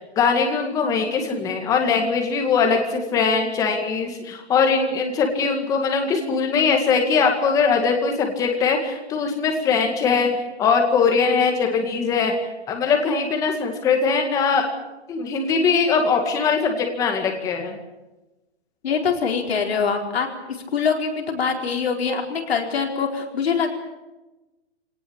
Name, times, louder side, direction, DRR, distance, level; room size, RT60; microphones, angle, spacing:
voice 1, 0.0-12.3 12.7-14.6 15.1-17.8, left 5 dB, 10° left, 3 dB, 2.1 m, -21 dB
voice 2, 18.8-20.4 20.7-23.7, left 6 dB, 70° left, 2 dB, 4.6 m, -23 dB
23.5 x 18.5 x 8.8 m, 1.1 s
hypercardioid pair, 180°, 32 cm